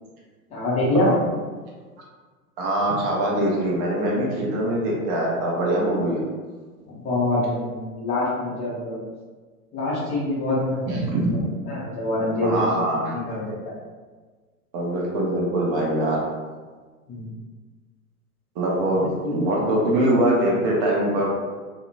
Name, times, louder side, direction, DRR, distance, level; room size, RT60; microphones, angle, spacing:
voice 1, 0.5-1.2 6.9-9.0 9.7-10.8 11.3-11.4 11.7-13.6 17.1-17.3 19.0-19.5, left 1 dB, 15° left, -7 dB, 0.5 m, -25 dB
voice 2, 2.6-6.2 10.9-11.6 12.4-13.4 14.7-16.2 18.6-21.3, right 1 dB, 40° right, -3 dB, 0.7 m, -23 dB
2.7 x 2.0 x 2.4 m, 1.4 s
figure-of-eight pair, 100°, 46 cm